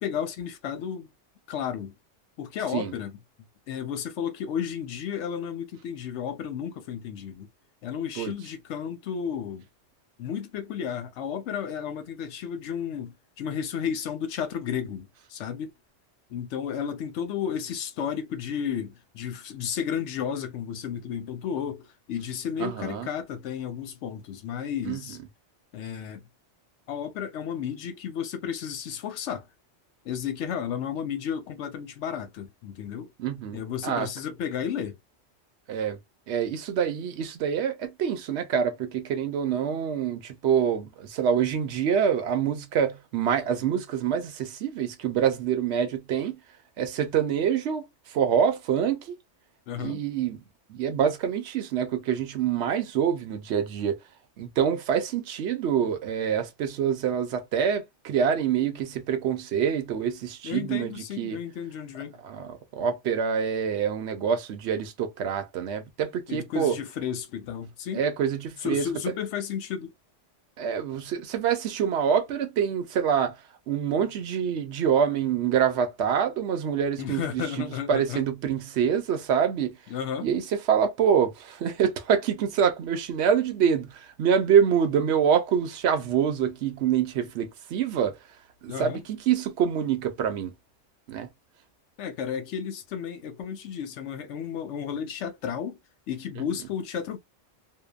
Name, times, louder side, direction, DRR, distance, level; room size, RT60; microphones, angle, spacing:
voice 1, 0.0-1.1 1.5-1.9 2.4-3.1 3.7-7.5 7.8-9.6 10.2-15.7 16.3-25.2 25.7-26.2 26.9-29.5 30.0-33.1 33.5-35.0 49.7-50.0 60.4-62.2 66.3-68.0 68.6-69.9 77.0-78.2 79.9-80.3 88.7-89.0 92.0-95.8 96.1-97.2, left 8 dB, 75° left, 0.9 m, -33 dB
voice 2, 22.6-23.1 24.8-25.0 33.2-34.1 35.7-36.0 36.3-46.4 46.8-49.2 49.8-50.4 50.7-54.0 54.4-61.4 62.2-66.8 67.9-69.1 70.6-73.4 73.7-79.8 80.2-80.4 80.7-88.2 88.6-90.5 91.1-91.3, right 8 dB, 70° right, 0.9 m, -26 dB
2.7 x 2.2 x 2.2 m
omnidirectional pair, 1.2 m